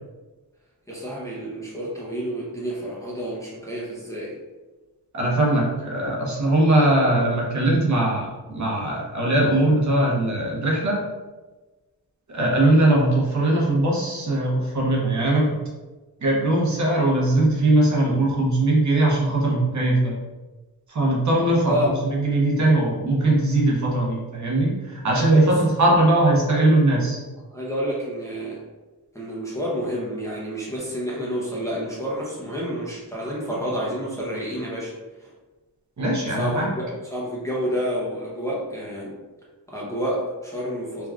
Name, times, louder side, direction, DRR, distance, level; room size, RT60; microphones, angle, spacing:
voice 1, 0.9-4.3 21.6-21.9 25.1-25.5 27.5-28.6 29.1-34.9 35.2-35.3 36.4-39.1 39.7-41.1, equal, 10° left, -6 dB, 0.5 m, -29 dB
voice 2, 5.1-11.0 12.3-15.5 16.2-20.1 20.9-27.2 36.0-36.7, right 2 dB, 50° right, -3 dB, 0.7 m, -20 dB
3.3 x 2.3 x 2.3 m, 1.2 s
wide cardioid pair, 130°, 37 cm